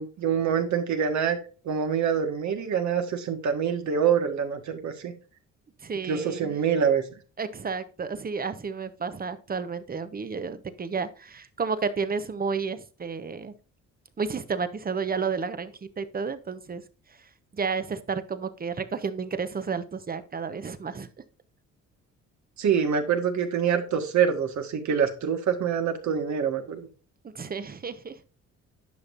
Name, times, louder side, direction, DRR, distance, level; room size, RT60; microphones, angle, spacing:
voice 1, 0.0-1.4 1.6-5.1 6.0-7.0 22.6-26.9, right 7 dB, 70° right, 6 dB, 1.7 m, -25 dB
voice 2, 5.8-6.5 7.4-13.5 14.2-16.8 17.5-21.1 27.2-28.3, right 5 dB, 30° right, 12 dB, 0.9 m, -31 dB
10.5 x 5.8 x 2.6 m, 0.36 s
cardioid pair, 90°, 30 cm